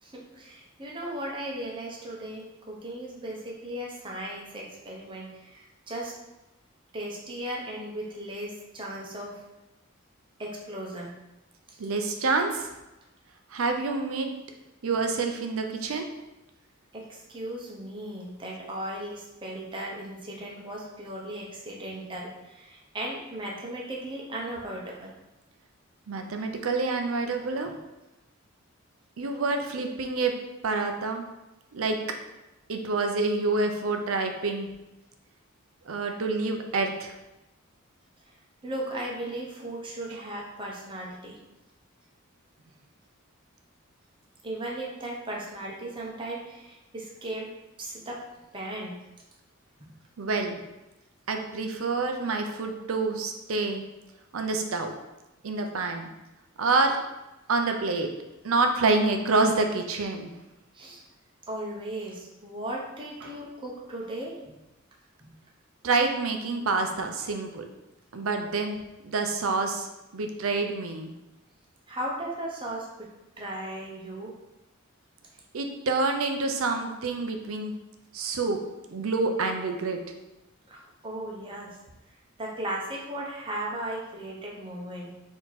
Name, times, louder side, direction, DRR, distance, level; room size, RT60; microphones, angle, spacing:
voice 1, 0.0-6.1 6.9-9.4 10.4-11.1 11.7-11.8 16.9-25.1 38.3-38.4 38.6-41.4 44.4-47.5 47.8-48.2 48.5-49.0 60.7-61.0 61.5-64.4 65.2-65.3 71.9-73.1 73.4-74.3 80.7-81.8 82.4-85.1, right 1 dB, 25° right, -3 dB, 0.8 m, -36 dB
voice 2, 11.8-12.7 13.5-14.3 14.8-16.1 26.1-27.7 29.2-30.3 30.6-31.2 31.7-32.0 32.7-34.7 35.9-37.1 50.2-50.6 51.3-53.8 54.3-54.9 55.4-56.1 56.6-57.0 57.5-58.1 58.4-60.3 63.2-63.3 65.8-67.6 68.1-68.8 69.0-71.1 75.5-77.7 78.1-78.6 78.9-80.0, right 3 dB, 80° right, 5 dB, 0.6 m, -27 dB
4.3 x 2.9 x 4.0 m, 0.98 s
head